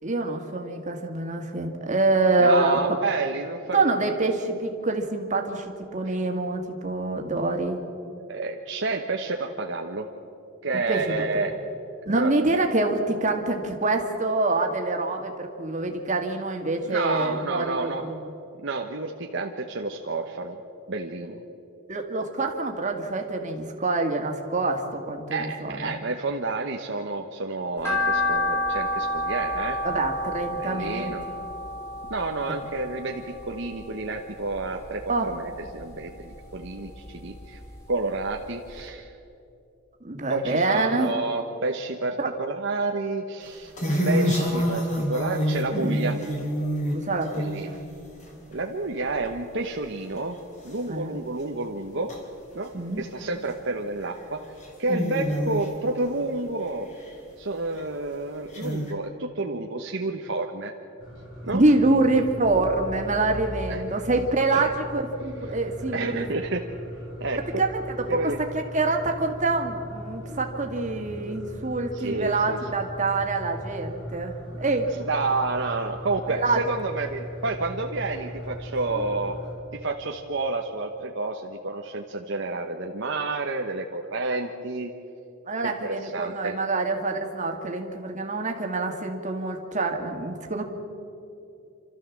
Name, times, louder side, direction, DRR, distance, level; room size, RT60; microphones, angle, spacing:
voice 1, 0.0-3.0 3.7-7.8 10.9-11.1 12.1-18.3 21.9-26.0 29.8-31.1 32.5-32.6 35.1-35.3 40.0-41.1 42.2-42.3 46.9-47.8 50.9-51.1 52.7-53.0 61.5-66.3 67.6-75.1 76.3-76.6 85.5-90.6, right 2 dB, 35° right, 3 dB, 2.1 m, -26 dB
voice 2, 2.4-4.1 8.2-10.1 10.6-11.6 12.1-12.3 16.8-18.1 18.6-20.6 20.9-21.4 25.3-29.8 30.6-31.3 32.1-37.6 37.9-39.1 40.3-43.7 44.0-46.2 47.3-47.8 48.5-50.4 50.6-52.1 52.5-52.7 53.0-54.4 54.8-56.9 57.4-60.7 61.4-61.6 63.7-63.8 64.5-64.7 65.9-66.6 67.2-67.6 68.1-68.4 71.9-72.6 75.0-79.4 79.7-84.9 85.6-86.6, right 3 dB, 60° right, 3 dB, 1.1 m, -30 dB
sound 1, 27.8-34.1 34.5-35.7 36.0-37.4 37.8-37.9 38.4-38.5 38.7-38.8, left 1 dB, 10° left, 3.6 m, -30 dB
sound 2, 43.5-48.5 49.0-49.4 49.8-49.9 50.2-50.3 50.7-50.8 52.1-52.2 53.2-53.4 54.0-54.1 54.4-56.0 56.6-57.1 57.8-57.9 58.5-58.9, equal, 35° left, 3.8 m, -27 dB
bathroom ambient, 61.0-79.5, equal, 70° left, 7.2 m, -39 dB
28.5 x 13.5 x 7.4 m, 2.8 s
head